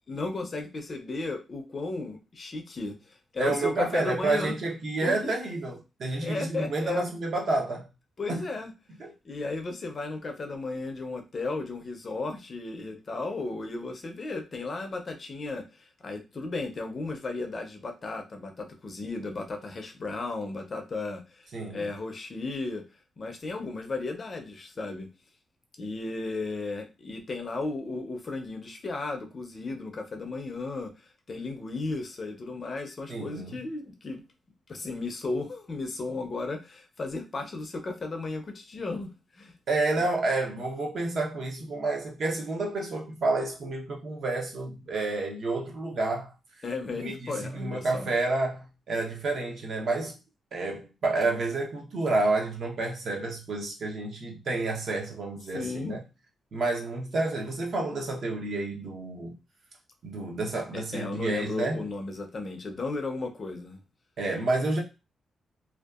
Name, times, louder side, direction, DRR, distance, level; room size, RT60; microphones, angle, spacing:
voice 1, 0.1-4.6 5.0-5.4 6.1-7.1 8.2-8.7 9.2-22.8 23.2-25.1 25.8-34.2 34.7-39.6 46.6-48.1 55.5-56.0 60.7-63.8, left 3 dB, 35° left, 0.4 m, -34 dB
voice 2, 3.4-7.9 8.3-8.4 9.0-9.1 21.5-21.8 33.1-33.5 39.7-46.3 46.9-50.2 50.5-56.0 56.5-59.3 60.0-61.8 64.2-64.8, right 2 dB, 50° right, 0.6 m, -29 dB
2.6 x 2.2 x 2.3 m
wide cardioid pair, 150°, 0 cm